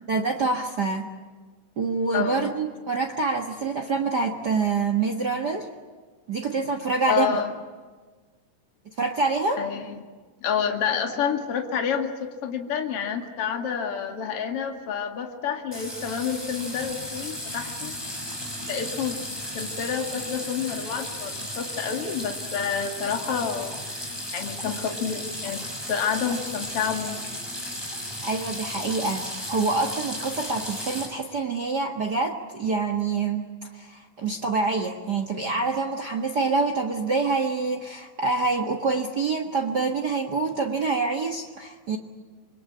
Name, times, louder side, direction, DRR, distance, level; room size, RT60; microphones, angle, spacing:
voice 1, 0.1-1.1 1.8-5.7 6.3-7.4 9.0-9.6 28.2-33.5 33.7-42.0, right 4 dB, 70° right, 5 dB, 0.9 m, -26 dB
voice 2, 2.1-2.5 7.1-7.5 9.6-10.0 10.4-17.9 18.7-19.2 19.5-23.8 24.3-25.6 25.9-27.2, left 7 dB, 40° left, 4 dB, 2.6 m, -28 dB
sound 1, 15.7-31.1, equal, 5° left, 6.3 m, -35 dB
27.0 x 22.5 x 8.6 m, 1.4 s
omnidirectional pair, 4.5 m